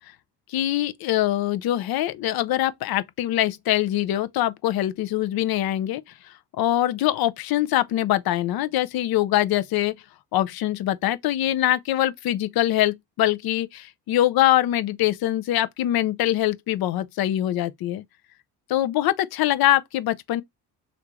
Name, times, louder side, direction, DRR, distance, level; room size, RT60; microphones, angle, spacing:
voice 1, 0.5-6.0 6.6-9.9 10.3-18.0 18.7-20.4, left 13 dB, 50° left, 0.5 m, -23 dB
3.3 x 2.6 x 3.0 m
hypercardioid pair, 50°, 48 cm